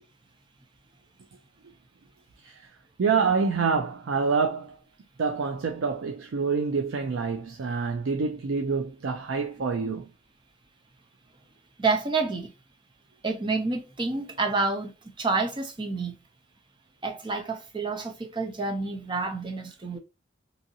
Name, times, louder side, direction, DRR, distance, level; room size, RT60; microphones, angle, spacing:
voice 1, 3.0-4.8 5.2-10.1, right 5 dB, 85° right, 0.4 m, -27 dB
voice 2, 11.8-12.5 13.2-14.9 15.2-16.1 17.0-20.0, right 3 dB, 25° right, 0.5 m, -28 dB
2.8 x 2.6 x 2.7 m
head